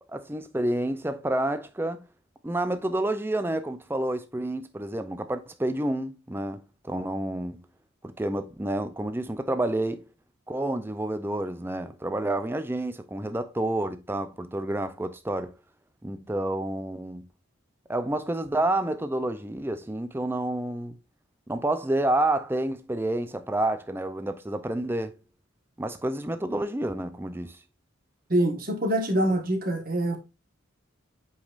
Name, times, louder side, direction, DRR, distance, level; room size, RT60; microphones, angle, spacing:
voice 1, 0.1-2.0 2.4-7.6 8.0-10.0 10.5-15.5 16.0-17.3 17.9-21.0 21.5-25.2 25.8-27.6, right 1 dB, 10° right, 0.4 m, -29 dB
voice 2, 28.3-30.2, right 1 dB, 40° right, 1.4 m, -25 dB
8.0 x 5.3 x 2.4 m
head